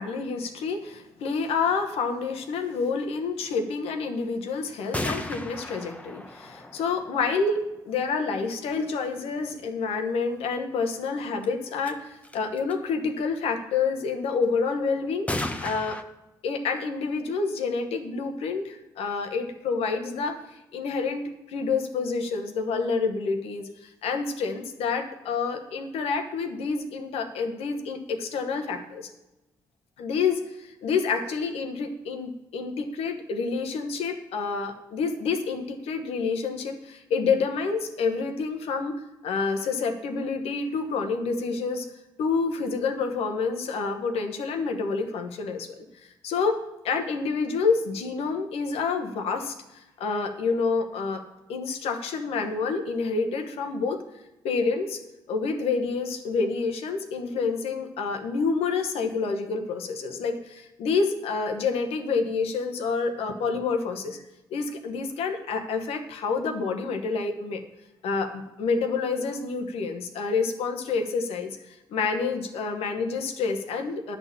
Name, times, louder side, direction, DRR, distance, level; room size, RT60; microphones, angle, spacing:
voice 1, 0.0-15.3 15.6-16.0 16.4-29.1 30.0-39.0 39.2-41.9 42.2-46.6 46.8-51.2 51.5-54.0 54.4-55.0 55.3-64.2 64.5-67.6 68.0-74.2, left 4 dB, 70° left, 6 dB, 1.2 m, -28 dB
sound 1, 4.9-7.8 11.4-11.5 11.8-11.9 12.2-12.7 15.3-16.0, left 1 dB, 15° left, 1.0 m, -34 dB
10.5 x 4.3 x 7.3 m, 0.96 s
hypercardioid pair, 45°, 10 cm